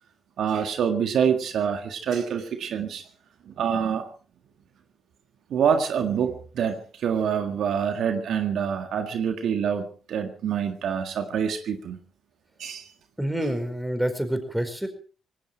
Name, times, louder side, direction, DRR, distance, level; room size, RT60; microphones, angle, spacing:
voice 1, 0.4-3.0 3.5-4.1 5.5-12.0 12.6-12.9, right 7 dB, 70° right, 7 dB, 1.7 m, -26 dB
voice 2, 13.2-14.9, right 1 dB, 5° right, 8 dB, 4.8 m, -27 dB
19.0 x 17.0 x 4.4 m, 0.39 s
hypercardioid pair, 50°, 0 cm